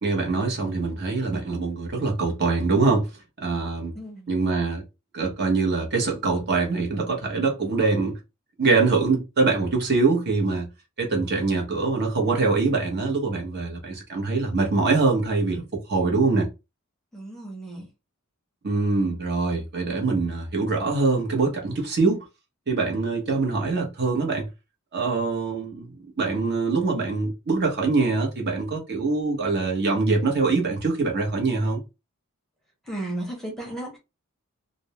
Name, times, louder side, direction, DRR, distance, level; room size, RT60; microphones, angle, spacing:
voice 1, 0.0-3.1 3.4-3.9 4.3-4.8 5.1-8.2 8.6-10.7 11.0-15.6 15.9-16.5 18.6-22.2 22.7-24.5 24.9-25.9 26.2-31.8, right 3 dB, 50° right, 0.9 m, -23 dB
voice 2, 3.9-4.4 17.1-17.9 32.8-34.0, right 1 dB, ahead, 0.7 m, -34 dB
2.5 x 2.0 x 2.8 m
head